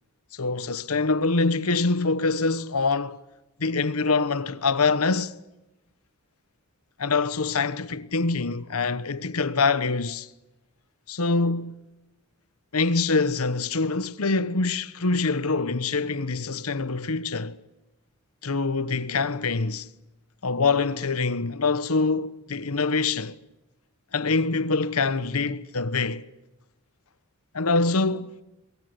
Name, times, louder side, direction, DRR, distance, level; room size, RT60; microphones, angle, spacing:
voice 1, 0.3-3.2 3.6-5.3 7.0-10.3 11.1-11.9 12.7-17.6 18.4-19.9 20.4-23.4 24.1-26.3 27.5-28.4, left 4 dB, 90° left, 1.1 m, -25 dB
23.5 x 22.0 x 8.4 m
head